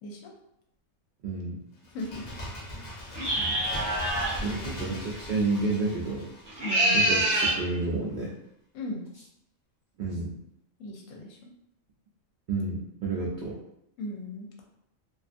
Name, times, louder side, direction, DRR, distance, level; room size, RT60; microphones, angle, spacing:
voice 1, 0.0-0.3 1.9-2.2 4.4-4.9 6.6-7.1 8.7-9.1 10.8-11.5 14.0-14.5, left 1 dB, 80° left, -1 dB, 1.0 m, -37 dB
voice 2, 1.2-1.6 3.3-3.6 4.4-6.3 6.9-8.3 10.0-10.4 12.5-13.6, right 3 dB, 90° right, -4 dB, 0.4 m, -30 dB
Bird, 1.8-7.4 7.7-7.8, left 1 dB, 50° left, 0.5 m, -40 dB
sound 1, 3.1-4.4 6.5-7.6, right 1 dB, 55° right, 0.8 m, -25 dB
2.5 x 2.4 x 2.4 m, 0.79 s
omnidirectional pair, 1.4 m